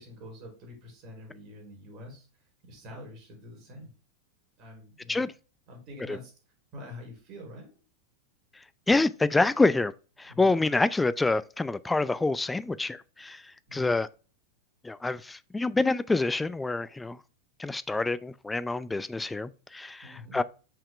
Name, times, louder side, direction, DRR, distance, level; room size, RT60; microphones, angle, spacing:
voice 1, 0.0-2.3 2.6-3.9 4.6-5.2 5.7-6.3 6.7-7.7 10.3-10.5 13.7-13.9 20.0-20.4, left 1 dB, 40° right, 3.5 m, -46 dB
voice 2, 8.9-9.9 10.2-14.1 14.8-17.2 17.6-20.4, left 3 dB, 10° left, 0.3 m, -27 dB
5.7 x 5.1 x 3.4 m
figure-of-eight pair, 90°, 0 cm